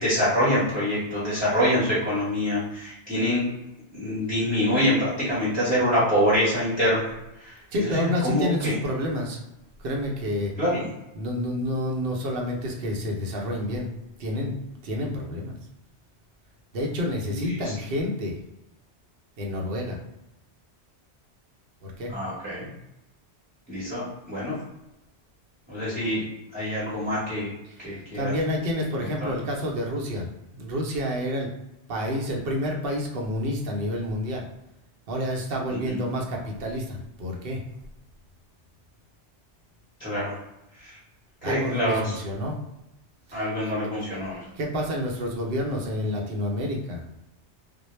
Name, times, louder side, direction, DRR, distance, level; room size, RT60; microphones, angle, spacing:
voice 1, 0.0-3.5 3.9-7.0 7.4-7.5 7.8-8.7 10.6-10.8 17.3-17.6 22.1-22.7 23.7-24.6 25.7-26.2 26.5-27.5 27.8-28.3 29.0-29.3 40.0-40.4 40.8-41.0 41.4-42.0 43.3-44.4, equal, 10° right, -10 dB, 0.8 m, -25 dB
voice 2, 7.7-9.4 9.8-10.5 11.1-13.9 14.2-14.6 14.8-15.5 16.7-18.4 19.4-20.0 21.8-22.1 27.6-31.5 31.9-34.4 35.1-37.6 41.4-42.6 43.3-43.7 44.5-47.0, left 1 dB, 60° right, 0 dB, 0.7 m, -29 dB
2.1 x 2.0 x 3.0 m, 0.89 s
omnidirectional pair, 1.2 m